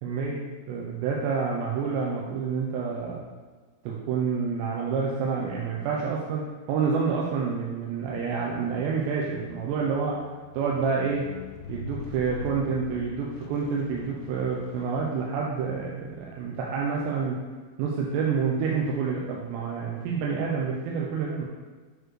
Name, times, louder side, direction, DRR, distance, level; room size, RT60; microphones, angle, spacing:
voice 1, 0.0-3.2 3.8-10.2 10.5-11.3 11.7-17.4 17.8-21.5, right 5 dB, 85° right, -3 dB, 2.8 m, -28 dB
Squeak, 9.5-15.8 16.6-16.7, left 5 dB, 80° left, 2.4 m, -44 dB
9.0 x 4.4 x 3.1 m, 1.4 s
omnidirectional pair, 5.1 m